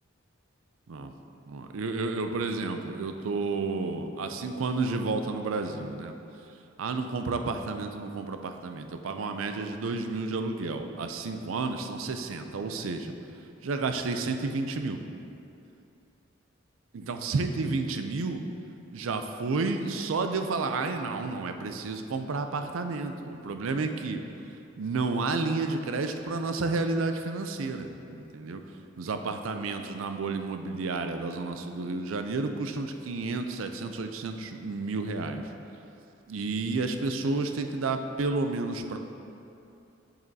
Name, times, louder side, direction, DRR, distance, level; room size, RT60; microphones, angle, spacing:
voice 1, 1.5-6.2 6.8-13.1 13.6-15.0 16.9-18.4 18.9-24.2 24.8-35.5 36.3-39.0, right 3 dB, 85° right, 7 dB, 0.5 m, -31 dB
7.6 x 7.4 x 2.8 m, 2.7 s
head